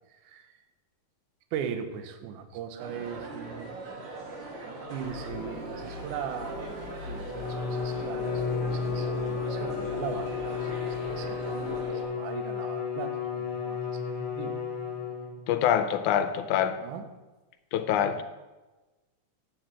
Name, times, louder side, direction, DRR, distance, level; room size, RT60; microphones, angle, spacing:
voice 1, 0.1-0.5 1.5-3.8 4.9-14.0 14.4-14.6 16.8-17.1, right 8 dB, 75° right, 8 dB, 2.2 m, -39 dB
sound 1, 2.8-12.0, right 2 dB, 50° right, 1.5 m, -41 dB
sound 2, 5.0-11.8, left 3 dB, 55° left, 1.5 m, -42 dB
Bowed string instrument, 7.2-15.5, left 5 dB, 40° left, 1.9 m, -33 dB
voice 2, 15.5-16.8 17.7-18.2, left 9 dB, 80° left, 10 dB, 1.9 m, -25 dB
8.1 x 6.1 x 7.4 m, 1.2 s
omnidirectional pair, 3.7 m